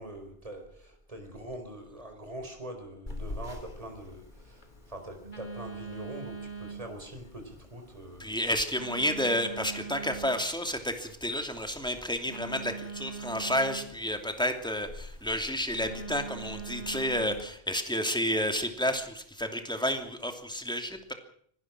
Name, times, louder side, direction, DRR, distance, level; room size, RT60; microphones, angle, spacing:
voice 1, 0.0-8.3, right 1 dB, 35° right, 5 dB, 4.6 m, -43 dB
Telephone, 3.1-17.4, right 2 dB, 45° left, 3.5 m, -43 dB
voice 2, 8.2-21.1, equal, 5° left, 5 dB, 2.8 m, -31 dB
24.5 x 18.5 x 6.2 m, 0.62 s
omnidirectional pair, 1.1 m